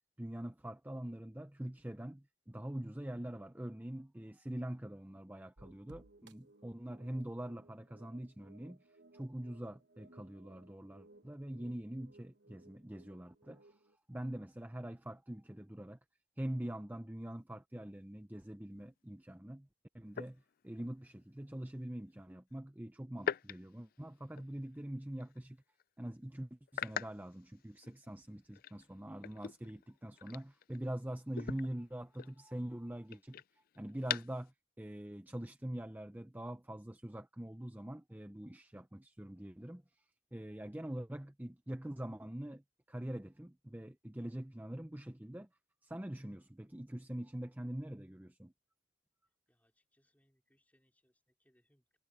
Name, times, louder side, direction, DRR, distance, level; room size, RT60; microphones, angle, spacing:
voice 1, 0.2-8.8 9.1-13.8 14.1-16.0 16.4-19.7 19.9-25.6 26.0-40.0 40.3-42.6 42.9-45.5 45.8-48.5, right 1 dB, 10° right, 0.6 m, -44 dB
sound 1, 5.6-14.0, right 2 dB, 65° right, 1.2 m, -63 dB
sound 2, 18.7-18.9 20.1-21.0 23.2-24.8 25.2-25.4 25.8-25.9 26.7-28.1 28.5-31.0 31.3-34.5, left 8 dB, 50° left, 0.4 m, -44 dB
voice 2, 49.5-52.0, equal, 10° left, 3.9 m, -76 dB
head